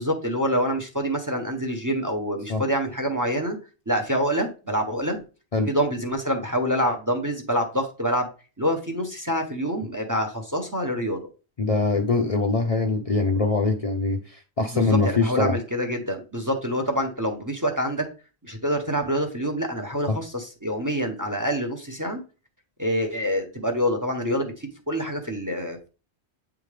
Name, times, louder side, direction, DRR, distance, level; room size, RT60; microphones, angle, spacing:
voice 1, 0.0-3.6 3.9-5.2 5.7-8.3 8.6-11.2 14.7-18.1 18.4-22.2 22.8-25.9, equal, 20° right, 4 dB, 0.7 m, -26 dB
voice 2, 11.6-15.6 20.1-20.2, left 3 dB, 40° left, 3 dB, 0.6 m, -23 dB
8.2 x 3.5 x 3.3 m, 0.34 s
omnidirectional pair, 1.1 m